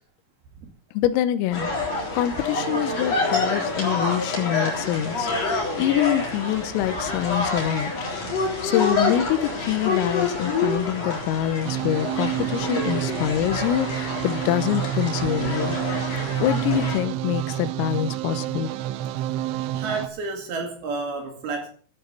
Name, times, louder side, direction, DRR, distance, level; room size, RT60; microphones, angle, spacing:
voice 1, 0.9-7.9 8.6-15.8 16.4-18.7, left 12 dB, 85° left, 12 dB, 3.6 m, -25 dB
sound 1, 1.5-17.0, left 3 dB, 35° left, 4.1 m, -27 dB
sound 2, 11.7-20.1, right 12 dB, 75° right, 3.1 m, -29 dB
voice 2, 19.7-21.7, right 3 dB, 55° right, 4 dB, 3.7 m, -30 dB
14.0 x 8.6 x 6.6 m, 0.43 s
omnidirectional pair, 6.0 m